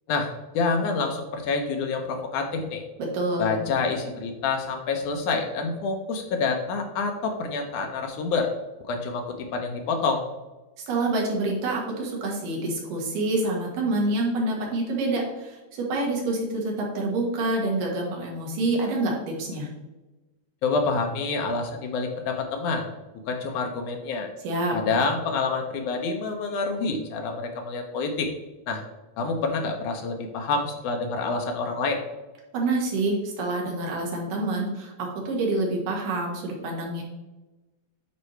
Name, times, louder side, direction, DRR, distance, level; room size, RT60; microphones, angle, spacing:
voice 1, 0.5-2.8 3.4-8.5 8.9-10.3 20.6-22.9 23.3-24.3 24.7-28.3 28.7-28.8 29.2-32.0, left 4 dB, 75° left, 4 dB, 2.1 m, -27 dB
voice 2, 3.1-3.6 10.9-19.7 24.4-24.8 32.5-37.0, right 2 dB, 80° right, -1 dB, 3.2 m, -27 dB
9.8 x 4.5 x 3.2 m, 1.1 s
omnidirectional pair, 3.8 m